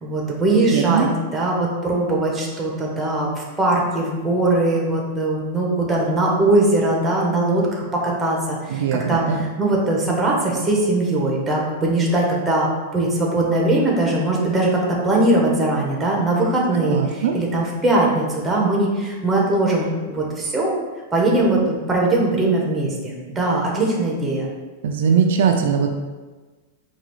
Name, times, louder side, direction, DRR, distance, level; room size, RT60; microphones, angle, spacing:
voice 1, 0.0-20.7 21.1-24.5, right 2 dB, 10° right, -3 dB, 0.8 m, -20 dB
voice 2, 0.7-1.1 8.7-9.5 16.9-17.4 24.8-25.9, right 7 dB, 70° right, 4 dB, 0.4 m, -20 dB
4.8 x 2.3 x 3.0 m, 1.3 s
supercardioid pair, 155°, 0 cm